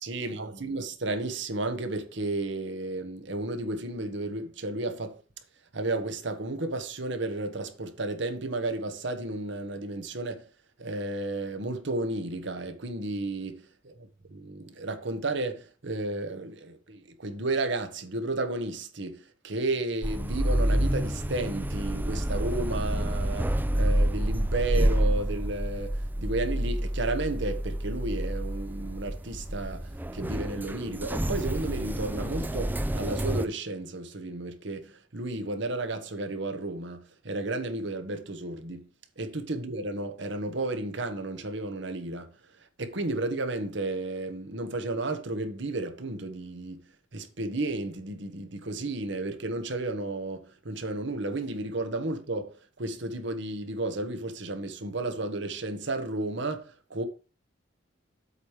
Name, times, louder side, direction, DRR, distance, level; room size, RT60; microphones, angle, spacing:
voice 1, 0.0-5.2 5.7-10.5 10.8-13.7 14.4-38.9 39.2-57.1, right 2 dB, 65° right, 1.2 m, -33 dB
sound 1, 20.0-33.4, right 1 dB, 10° right, 0.4 m, -28 dB
8.1 x 3.2 x 6.4 m
head